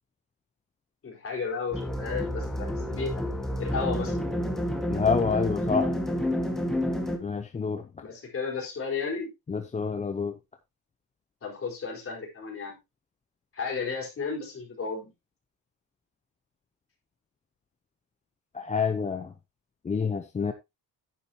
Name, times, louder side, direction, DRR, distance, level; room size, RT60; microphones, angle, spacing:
voice 1, 1.0-3.2 3.6-4.2 8.0-9.3 11.4-12.8 13.5-15.1, left 5 dB, 35° left, 4.3 m, -33 dB
sound 1, 1.7-7.2, equal, ahead, 1.5 m, -29 dB
voice 2, 4.9-5.9 7.2-7.8 9.5-10.3 18.5-19.3 19.9-20.5, left 5 dB, 20° left, 0.6 m, -27 dB
9.9 x 9.9 x 2.8 m
cardioid pair, 180°, 38 cm